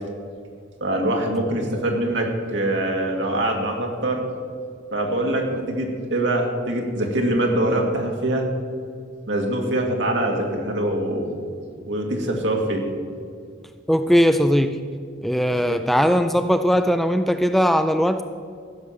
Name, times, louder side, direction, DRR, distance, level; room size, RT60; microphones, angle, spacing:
voice 1, 0.8-4.2 4.9-8.5 9.3-11.3 11.9-12.9 15.5-15.8, right 1 dB, 65° right, 1 dB, 2.1 m, -24 dB
voice 2, 13.9-14.8 15.2-18.2, equal, ahead, 8 dB, 0.4 m, -19 dB
15.0 x 6.3 x 7.4 m, 2.2 s
head